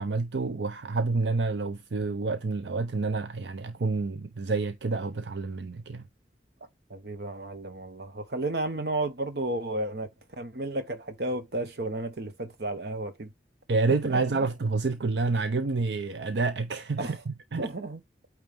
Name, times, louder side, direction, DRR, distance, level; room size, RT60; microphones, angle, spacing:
voice 1, 0.0-6.1 13.7-17.7, right 3 dB, 80° right, 0.6 m, -28 dB
voice 2, 6.9-10.1 10.4-13.3 14.1-14.5 17.0-17.2 17.6-18.0, right 2 dB, 65° right, 1.1 m, -33 dB
8.9 x 3.2 x 3.4 m
head